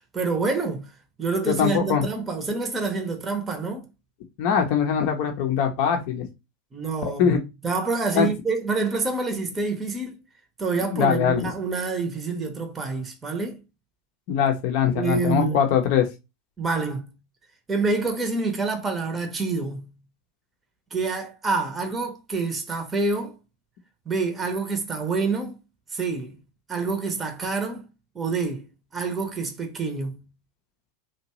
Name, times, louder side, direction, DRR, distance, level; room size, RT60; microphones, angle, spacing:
voice 1, 0.1-3.9 6.7-10.2 10.6-13.6 14.9-15.6 16.6-17.1 17.7-19.9 20.9-23.4 24.1-25.6 25.9-26.4 26.7-27.8 28.1-28.7 28.9-30.2, right 4 dB, 20° right, 0.7 m, -27 dB
voice 2, 1.5-2.0 4.4-6.3 7.0-7.4 8.1-8.3 10.9-11.5 14.3-16.1, left 8 dB, 55° left, 0.6 m, -22 dB
2.7 x 2.2 x 2.9 m
hypercardioid pair, 90°, 0 cm